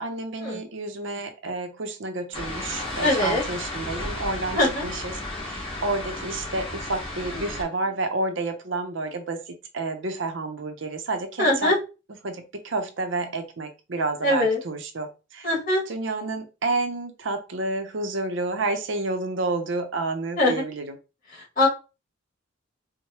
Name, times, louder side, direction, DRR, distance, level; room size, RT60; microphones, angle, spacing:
voice 1, 0.0-5.2 5.4-11.7 12.2-15.5 15.9-21.0, right 2 dB, 70° right, 6 dB, 0.6 m, -30 dB
sound 1, 2.3-7.6, left 2 dB, 25° left, 1.2 m, -33 dB
voice 2, 3.0-3.4 4.5-4.9 7.2-7.5 11.4-11.8 14.2-14.6 15.4-15.8 20.4-20.6 21.3-21.7, left 1 dB, 45° left, -5 dB, 2.0 m, -22 dB
4.6 x 2.1 x 2.9 m, 0.30 s
head